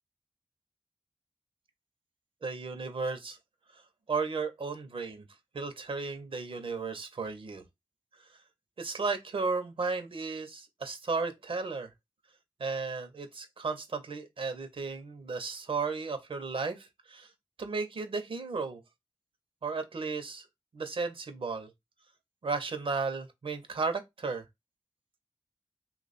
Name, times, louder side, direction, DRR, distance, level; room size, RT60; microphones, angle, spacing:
voice 1, 2.4-3.4 3.7-3.8 4.1-5.2 5.5-7.6 8.2-8.3 8.8-11.9 12.6-17.3 17.6-18.8 19.6-20.4 20.7-21.7 22.4-24.4, right 4 dB, 90° right, 0.7 m, -34 dB
3.0 x 2.3 x 4.0 m
wide cardioid pair, 50°, 9 cm